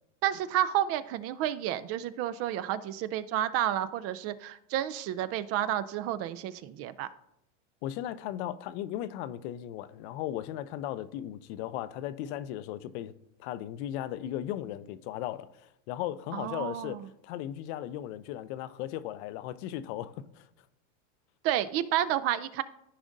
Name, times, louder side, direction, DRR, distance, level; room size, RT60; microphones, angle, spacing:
voice 1, 0.2-7.1 16.3-17.0 21.4-22.6, right 12 dB, 40° right, 0.4 m, -30 dB
voice 2, 7.8-13.1 13.4-20.5, left 12 dB, 60° left, 0.6 m, -37 dB
14.0 x 5.0 x 2.6 m
supercardioid pair, 115°, 38 cm